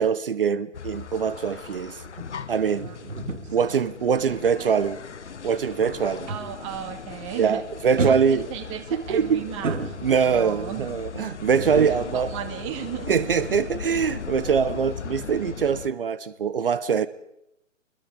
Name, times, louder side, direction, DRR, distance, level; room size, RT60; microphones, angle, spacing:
voice 1, 0.0-2.0 2.5-2.9 3.5-5.0 5.4-6.3 7.4-8.5 9.1-9.4 10.0-12.3 13.1-17.1, right 6 dB, 45° right, 1.0 m, -23 dB
sound 1, 0.7-15.9, left 6 dB, 60° left, 1.1 m, -38 dB
sound 2, 1.2-6.8 7.1-7.5 8.0-10.5 11.5-13.5 13.7-13.9, right 4 dB, 70° right, 2.0 m, -34 dB
voice 2, 4.2-4.7 6.3-7.6 8.0-10.9 11.9-13.2, right 11 dB, 25° right, 2.0 m, -36 dB
26.0 x 21.5 x 5.0 m
figure-of-eight pair, 135°, 38 cm